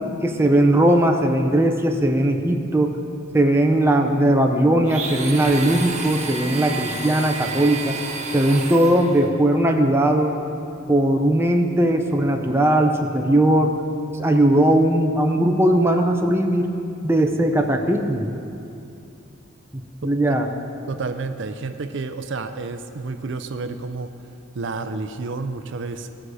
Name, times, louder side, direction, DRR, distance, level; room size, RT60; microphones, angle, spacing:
voice 1, 0.2-2.9 3.3-8.0 8.3-10.3 10.9-13.7 14.2-16.7 17.0-18.3 19.7-20.5, right 1 dB, 10° right, 3 dB, 0.6 m, -19 dB
Domestic sounds home sounds, 4.8-9.3, right 4 dB, 35° right, 0.9 m, -31 dB
voice 2, 20.0-20.4 20.9-24.1 24.6-26.1, right 3 dB, 60° right, 8 dB, 0.5 m, -30 dB
18.0 x 6.3 x 4.8 m, 2.6 s
head